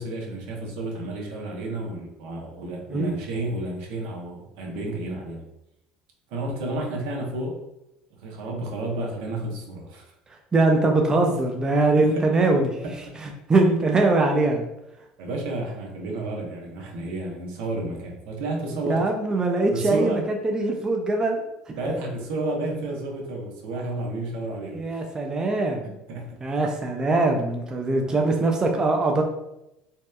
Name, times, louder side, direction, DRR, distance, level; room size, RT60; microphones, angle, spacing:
voice 1, 0.0-5.5 6.3-7.6 8.2-10.1 12.0-12.2 12.8-13.2 15.2-19.0 19.7-20.2 21.8-25.1 25.8-26.4 28.0-28.2, right 2 dB, 75° right, 0 dB, 0.6 m, -31 dB
voice 2, 10.5-12.8 13.2-14.7 18.9-21.7 24.7-25.9 26.4-29.2, right 2 dB, 25° right, 2 dB, 0.3 m, -22 dB
2.8 x 2.1 x 2.2 m, 0.88 s
supercardioid pair, 100°, 3 cm